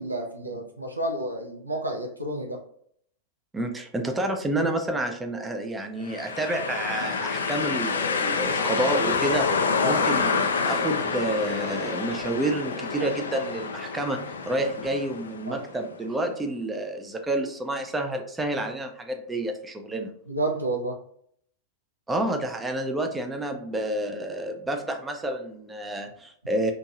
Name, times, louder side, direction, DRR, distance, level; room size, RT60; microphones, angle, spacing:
voice 1, 0.0-2.6 9.8-10.0 15.5-15.6 20.3-21.0, right 1 dB, 85° right, 2 dB, 0.5 m, -30 dB
voice 2, 3.5-14.2 14.5-20.1 22.1-26.7, right 1 dB, 10° right, 4 dB, 0.4 m, -29 dB
sound 1, 6.1-15.9, left 5 dB, 70° left, 0.3 m, -28 dB
2.9 x 2.6 x 2.3 m, 0.65 s
figure-of-eight pair, 90°, 0 cm